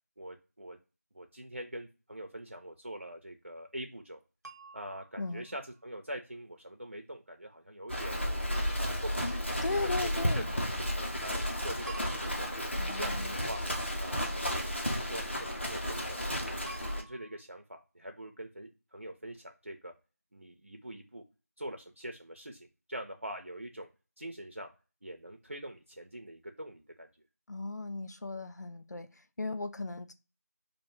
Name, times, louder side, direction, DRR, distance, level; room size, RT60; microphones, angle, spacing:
voice 1, 0.2-0.8 1.1-4.2 4.7-8.3 8.7-9.4 9.7-10.8 11.2-12.5 12.8-13.6 14.0-14.2 14.5-16.2 16.5-19.9 20.3-21.2 21.6-23.9 24.2-24.7 25.0-27.1, right 1 dB, 50° right, 5 dB, 0.3 m, -44 dB
sound 1, 4.4-5.9 8.5-9.7 11.9-13.3 16.7-17.4, right 3 dB, 90° right, 0.8 m, -51 dB
Livestock farm animals working animals, 7.9-17.0, equal, 45° left, 0.6 m, -33 dB
voice 2, 9.2-10.5 12.8-13.3 27.5-30.1, left 3 dB, 85° left, 9 dB, 0.4 m, -37 dB
2.4 x 2.1 x 3.0 m, 0.31 s
figure-of-eight pair, 180°, 9 cm